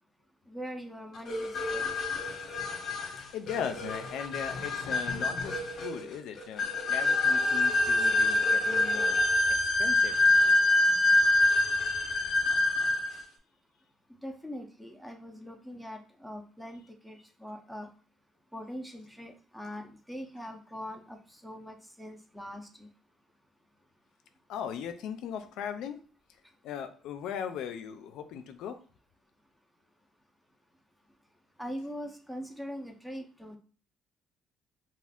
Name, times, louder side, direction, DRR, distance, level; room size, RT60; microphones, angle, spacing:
voice 1, 0.5-1.9 14.2-17.9 18.5-22.9 31.6-33.6, equal, ahead, 4 dB, 0.4 m, -42 dB
sound 1, 1.3-13.2, left 2 dB, 50° left, 0.7 m, -26 dB
voice 2, 3.3-9.2 9.6-10.2 24.5-26.0 26.6-28.8, left 8 dB, 80° left, 8 dB, 0.3 m, -38 dB
2.4 x 2.4 x 3.4 m, 0.40 s
cardioid pair, 135°, 0 cm